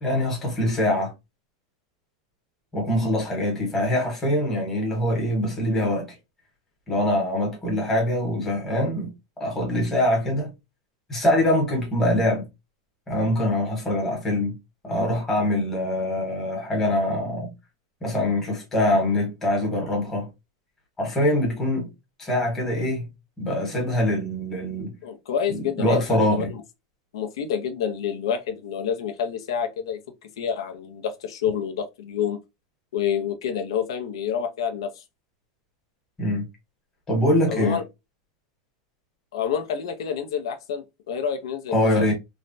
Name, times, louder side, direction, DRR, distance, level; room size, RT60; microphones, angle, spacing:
voice 1, 0.0-1.1 2.7-6.1 6.9-9.1 9.4-10.5 11.1-12.5 13.1-14.6 14.8-17.5 18.0-20.3 21.0-21.9 22.2-23.1 23.4-24.9 25.5-26.5 36.2-36.4 37.1-37.8 41.7-42.1, left 1 dB, 10° left, 1.0 m, -23 dB
voice 2, 25.0-26.6 27.1-30.0 30.4-32.4 32.9-35.0 37.5-37.8 39.3-42.1, left 8 dB, 90° left, 0.6 m, -28 dB
3.1 x 2.1 x 2.5 m
supercardioid pair, 175°, 3 cm